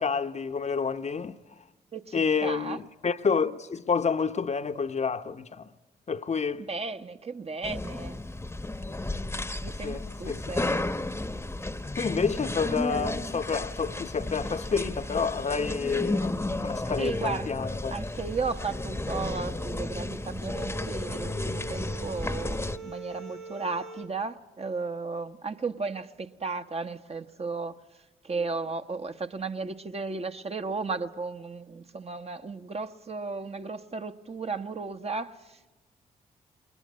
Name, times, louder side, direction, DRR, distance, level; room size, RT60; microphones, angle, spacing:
voice 1, 0.0-1.4 2.1-5.7 6.1-6.7 9.8-10.4 10.7-10.8 12.0-17.9, left 5 dB, 40° left, 0.9 m, -29 dB
voice 2, 1.9-2.8 6.7-8.2 9.6-10.8 17.0-27.8 28.2-35.8, right 4 dB, 35° right, 1.1 m, -35 dB
sound 1, 7.6-22.8, left 2 dB, 15° left, 1.0 m, -33 dB
sound 2, 18.0-24.1, right 4 dB, 85° right, 1.4 m, -44 dB
21.0 x 19.0 x 9.5 m
hypercardioid pair, 40°, 18 cm